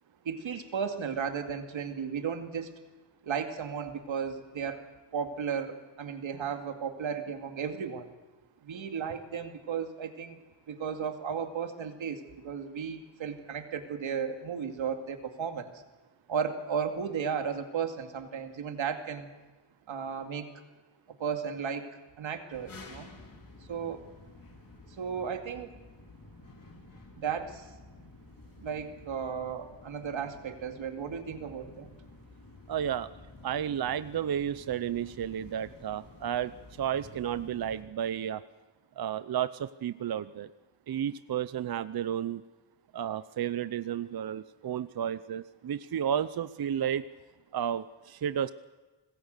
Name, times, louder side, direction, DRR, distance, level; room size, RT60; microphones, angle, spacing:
voice 1, 0.2-2.8 3.2-4.8 5.1-8.1 8.6-10.4 10.7-15.7 16.3-19.3 19.9-20.6 21.2-23.1 23.7-24.1 25.0-25.7 27.1-27.7 28.6-31.9, right 7 dB, 90° right, 5 dB, 2.4 m, -34 dB
sound 1, 22.5-37.8, left 2 dB, 45° left, 3.6 m, -52 dB
voice 2, 32.7-33.1 33.4-36.5 36.8-38.4 39.0-40.5 40.9-42.4 42.9-47.0 47.5-48.5, right 9 dB, 55° right, 14 dB, 0.7 m, -32 dB
26.0 x 20.0 x 6.6 m, 1.2 s
wide cardioid pair, 115°, 45 cm